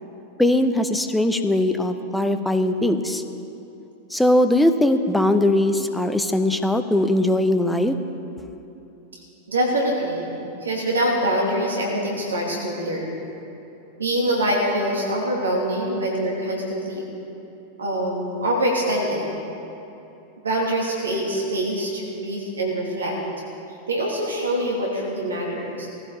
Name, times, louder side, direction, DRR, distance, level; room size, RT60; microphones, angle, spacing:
voice 1, 0.4-3.2 4.1-8.0, left 1 dB, 5° left, 8 dB, 0.9 m, -20 dB
voice 2, 9.5-10.3 10.6-13.1 14.0-17.1 17.8-19.2 20.4-23.1 23.9-25.9, right 1 dB, 75° right, -2 dB, 2.7 m, -24 dB
18.0 x 15.5 x 4.1 m, 2.9 s
figure-of-eight pair, 90°, 0 cm